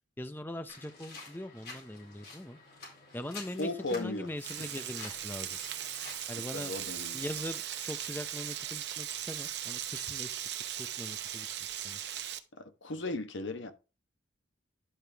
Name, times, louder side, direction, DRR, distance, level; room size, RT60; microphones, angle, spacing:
voice 1, 0.2-2.6 3.1-5.6 6.3-6.7 7.1-10.4 10.8-12.0, left 1 dB, 10° left, 0.6 m, -41 dB
sound 1, 0.7-6.2, left 3 dB, 55° left, 4.2 m, -49 dB
voice 2, 3.6-4.3 6.5-7.2 12.6-13.7, left 2 dB, 85° left, 1.2 m, -36 dB
Frying (food), 4.4-12.4, right 10 dB, 60° right, 0.8 m, -38 dB
11.0 x 5.1 x 3.4 m
head